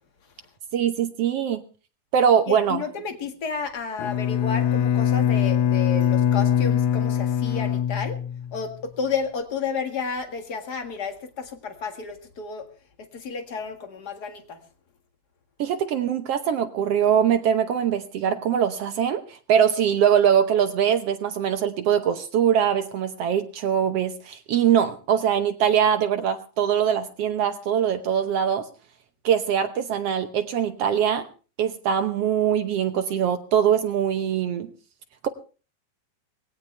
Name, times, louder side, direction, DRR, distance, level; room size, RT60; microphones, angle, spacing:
voice 1, 0.7-1.6 2.1-2.8 15.6-28.6 29.2-31.3 31.6-34.7, right 8 dB, 75° right, 8 dB, 1.4 m, -22 dB
voice 2, 2.5-8.2 8.5-12.7 13.0-14.6, left 5 dB, 35° left, 6 dB, 1.8 m, -31 dB
Bowed string instrument, 4.0-8.7, left 9 dB, 85° left, 2.7 m, -22 dB
19.5 x 17.0 x 3.3 m, 0.36 s
omnidirectional pair, 4.0 m